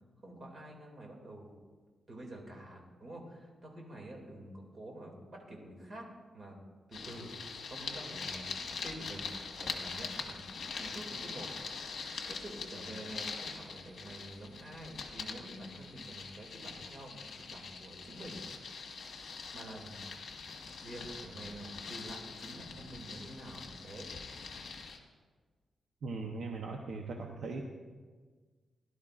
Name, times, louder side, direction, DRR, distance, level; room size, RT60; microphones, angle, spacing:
voice 1, 0.2-1.5 2.1-6.0 6.3-6.6 6.9-7.3 7.7-9.3 9.6-10.4 10.8-11.5 12.3-18.4 19.5-20.0 20.8-24.1, right 1 dB, 35° right, -1 dB, 2.4 m, -47 dB
sound 1, 6.9-25.0, left 5 dB, 60° left, 1.4 m, -43 dB
voice 2, 26.0-27.6, right 3 dB, 65° right, 2 dB, 0.9 m, -39 dB
17.5 x 11.5 x 2.5 m, 1.5 s
wide cardioid pair, 150°, 0 cm